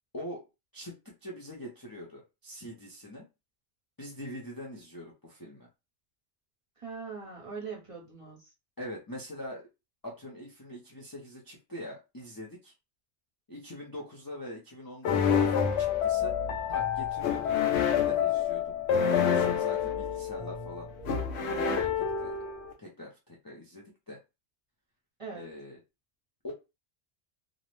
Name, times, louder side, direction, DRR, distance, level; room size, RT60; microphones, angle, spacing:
voice 1, 0.1-0.5 0.7-3.3 4.0-5.7 8.8-9.7 10.0-12.7 13.5-16.3 16.7-17.6 18.0-18.7 19.1-20.9 21.3-22.4 22.8-24.2 25.3-25.8 26.4-26.5, left 1 dB, 25° left, 0.5 m, -43 dB
voice 2, 6.8-8.5 25.2-25.5, right 5 dB, 35° right, 0.8 m, -41 dB
sound 1, 15.0-22.7, left 8 dB, 85° left, 0.9 m, -28 dB
sound 2, 15.7-22.0, right 2 dB, 50° left, 1.0 m, -46 dB
2.5 x 2.0 x 3.1 m
omnidirectional pair, 1.1 m